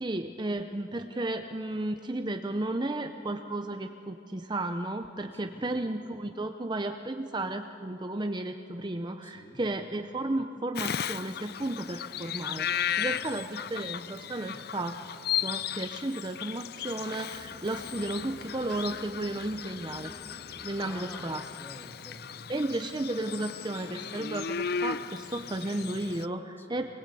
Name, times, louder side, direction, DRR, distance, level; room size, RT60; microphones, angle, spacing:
voice 1, 0.0-15.0 15.4-20.1 20.6-21.4 22.5-26.8, right 2 dB, 25° right, 6 dB, 0.6 m, -33 dB
voice 2, 9.2-9.6 12.9-13.2 20.8-22.5 26.6-26.8, left 1 dB, 10° left, 4 dB, 1.8 m, -49 dB
Bird vocalization bird call bird song, 10.8-26.3, left 8 dB, 55° left, 0.5 m, -36 dB
sound 1, 17.3-21.7, equal, 30° left, 2.8 m, -52 dB
25.5 x 21.0 x 8.4 m, 2.9 s
head